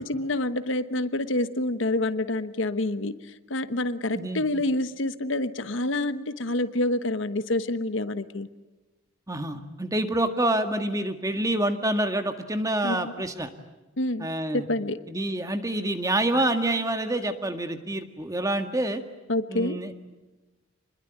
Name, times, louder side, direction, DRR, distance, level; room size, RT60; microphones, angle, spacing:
voice 1, 0.0-8.5 12.8-13.1 14.0-14.3 14.5-15.0 16.3-16.4 19.3-19.8, left 2 dB, 65° left, 12 dB, 1.1 m, -27 dB
voice 2, 4.1-4.5 9.3-13.5 14.2-14.6 15.1-19.0 19.5-20.0, right 1 dB, 15° right, 7 dB, 1.8 m, -27 dB
26.5 x 21.5 x 9.3 m, 1.2 s
head